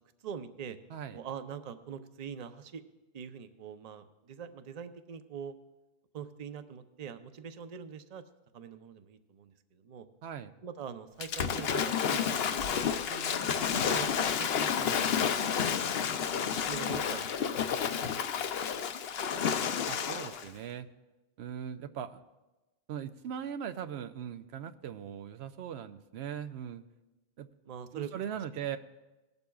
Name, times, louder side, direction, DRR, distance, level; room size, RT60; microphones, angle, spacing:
voice 1, 0.2-0.8 1.1-2.8 3.1-5.5 6.1-8.2 8.5-10.1 10.6-13.0 13.5-14.1 14.4-15.2 15.7-15.9 16.3-18.5 18.7-18.9 19.3-19.8 27.7-28.1, right 7 dB, 45° right, 9 dB, 0.6 m, -44 dB
voice 2, 10.2-10.5 13.1-14.2 19.4-19.5 19.9-20.9 21.4-22.2 22.9-26.8 27.4-27.5 27.9-28.8, right 8 dB, 90° right, 9 dB, 0.9 m, -40 dB
Waves surf / Splash splatter, 11.2-20.5, left 7 dB, 70° left, 0.9 m, -30 dB
18.5 x 12.0 x 2.3 m, 1.1 s
omnidirectional pair, 1.1 m